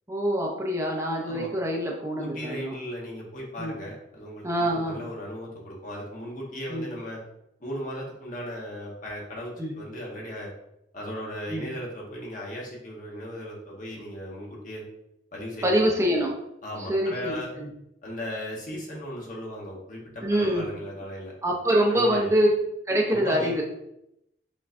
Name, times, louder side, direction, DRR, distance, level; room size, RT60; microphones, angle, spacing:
voice 1, 0.1-2.7 3.6-3.7 4.4-5.0 6.7-6.9 9.6-9.7 11.5-11.7 15.6-16.3 16.9-17.7 20.2-20.7 21.4-22.5 22.9-23.6, equal, 15° right, -1 dB, 0.7 m, -25 dB
voice 2, 2.2-7.2 7.6-10.5 10.9-14.8 15.3-15.9 16.6-17.5 18.0-21.3 21.9-22.3 23.1-23.6, equal, 50° left, -2 dB, 1.2 m, -37 dB
5.4 x 3.8 x 2.6 m, 0.81 s
head